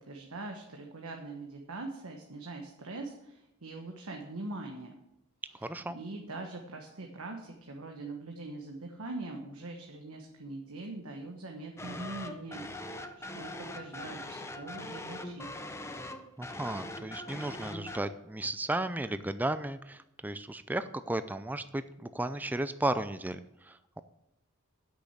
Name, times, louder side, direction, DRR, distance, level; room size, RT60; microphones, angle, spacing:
voice 1, 0.1-4.9 5.9-15.5, right 2 dB, 85° right, 2 dB, 1.2 m, -42 dB
voice 2, 5.6-6.0 16.4-24.0, right 1 dB, 10° right, 12 dB, 0.4 m, -34 dB
sound 1, 11.8-18.0, left 1 dB, 15° left, 0.7 m, -42 dB
8.5 x 6.3 x 8.3 m, 0.85 s
head